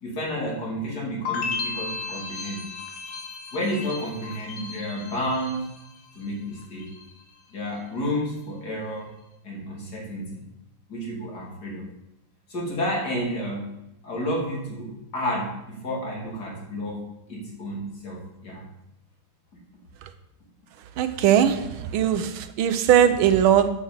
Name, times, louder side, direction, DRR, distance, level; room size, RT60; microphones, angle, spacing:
voice 1, 0.0-2.7 3.5-5.7 6.1-6.8 7.5-9.1 9.4-10.5 10.9-11.9 12.5-13.7 14.0-18.6, equal, 50° left, -2 dB, 3.5 m, -31 dB
sound 1, 1.3-6.3 6.6-7.2, left 5 dB, 85° left, 2.3 m, -35 dB
voice 2, 21.0-21.6 21.9-22.3 22.6-23.7, right 9 dB, 85° right, 10 dB, 1.6 m, -19 dB
9.3 x 6.1 x 7.4 m, 0.89 s
omnidirectional pair, 2.2 m